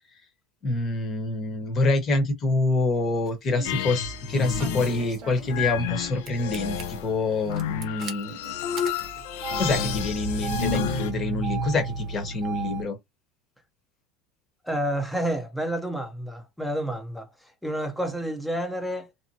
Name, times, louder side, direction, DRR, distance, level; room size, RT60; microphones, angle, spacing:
voice 1, 0.6-8.5 9.6-13.0, left 2 dB, 35° left, 1.1 m, -26 dB
Engine starting, 3.3-3.8 4.6-6.0 6.3-6.8 7.5-12.8, right 3 dB, 45° right, 0.7 m, -34 dB
sound 1, 3.6-11.1, left 8 dB, 80° left, 0.6 m, -31 dB
voice 2, 14.6-19.1, right 1 dB, ahead, 0.7 m, -30 dB
2.7 x 2.1 x 2.7 m
supercardioid pair, 125°, 0 cm